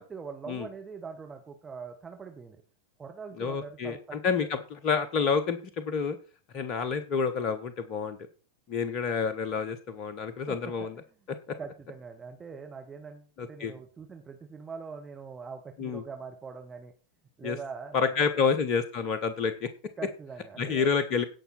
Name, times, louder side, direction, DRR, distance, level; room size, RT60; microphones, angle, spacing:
voice 1, 0.0-2.6 3.0-4.5 10.5-11.2 11.6-16.9 17.4-18.3 20.0-20.9, right 5 dB, 15° right, 4 dB, 1.3 m, -43 dB
voice 2, 3.4-4.6 4.8-6.2 6.5-8.2 8.7-11.0 11.3-11.6 13.4-13.7 15.8-16.0 17.4-17.6 17.9-19.7 20.6-21.2, left 5 dB, 35° left, 12 dB, 1.1 m, -28 dB
17.0 x 5.7 x 4.2 m, 0.36 s
figure-of-eight pair, 90°, 0 cm